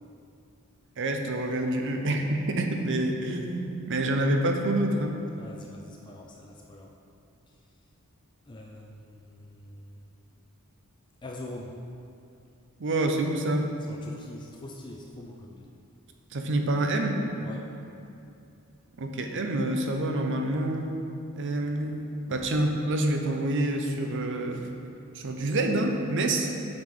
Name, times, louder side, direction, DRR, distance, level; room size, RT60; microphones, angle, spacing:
voice 1, 1.0-5.2 12.8-13.7 16.3-17.3 19.0-21.0 21.4-22.0 22.3-24.6 25.1-26.5, right 1 dB, 55° right, 4 dB, 0.6 m, -27 dB
voice 2, 5.4-6.9 8.5-10.1 11.2-11.7 13.9-15.7 17.4-17.8, left 2 dB, 20° left, 0 dB, 0.4 m, -44 dB
7.5 x 5.1 x 3.7 m, 2.6 s
head